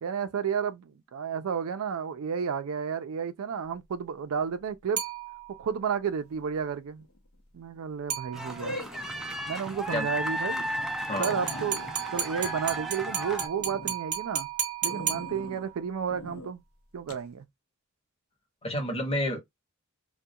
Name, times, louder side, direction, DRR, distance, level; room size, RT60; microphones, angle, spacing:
voice 1, 0.0-5.0 5.6-7.1 7.5-8.8 9.5-10.7 11.2-11.9 12.1-14.5 14.8-16.6 16.9-17.5, right 7 dB, 75° right, 0.4 m, -32 dB
sound 1, 5.0-5.8 8.1-8.8 11.2-15.8, right 9 dB, 35° right, 0.8 m, -34 dB
sound 2, 7.0-7.4 8.6-9.4 9.8-9.9 10.4-10.5 10.8-10.9 11.1-13.1 13.5-14.0 14.9-15.7 16.1-16.5 17.1-17.3, left 1 dB, 80° left, 0.6 m, -42 dB
sound 3, 8.3-13.5, equal, ahead, 0.4 m, -34 dB
voice 2, 18.6-19.4, left 1 dB, 30° left, 0.8 m, -29 dB
2.3 x 2.1 x 2.6 m
head